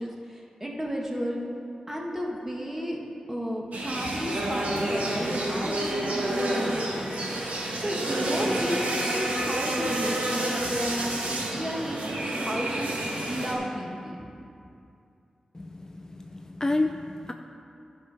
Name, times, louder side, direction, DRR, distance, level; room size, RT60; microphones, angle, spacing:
voice 1, 0.0-1.4 1.9-3.0 3.3-7.3 7.8-14.2, equal, 15° right, -1 dB, 1.7 m, -33 dB
sound 1, 3.7-13.6, right 1 dB, 75° right, 1.6 m, -29 dB
voice 2, 15.5-17.3, left 2 dB, 25° left, 5 dB, 0.4 m, -30 dB
10.5 x 5.3 x 5.1 m, 2.5 s
cardioid pair, 40°, 2 cm